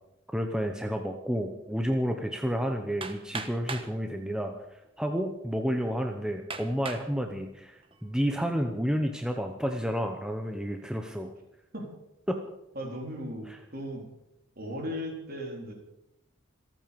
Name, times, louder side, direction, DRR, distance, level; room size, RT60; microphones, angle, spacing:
voice 1, 0.3-11.3 12.3-12.4 13.5-13.6, equal, 5° right, 4 dB, 0.9 m, -30 dB
Hammer, 3.0-3.9 4.8-4.9 5.5-5.6 6.5-7.1 7.7-8.1, right 4 dB, 25° right, 1.2 m, -38 dB
voice 2, 12.7-14.1 14.6-15.7, equal, 45° right, 1 dB, 3.8 m, -37 dB
27.0 x 9.0 x 5.3 m, 0.86 s
head